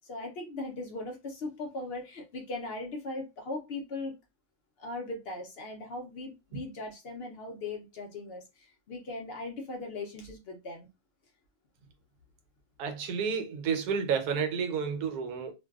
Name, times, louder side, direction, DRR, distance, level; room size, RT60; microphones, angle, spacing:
voice 1, 0.1-4.2 4.8-10.9, left 2 dB, 70° left, 0.5 m, -39 dB
voice 2, 12.8-15.5, right 6 dB, 90° right, 1.1 m, -31 dB
2.5 x 2.2 x 2.2 m
omnidirectional pair, 1.6 m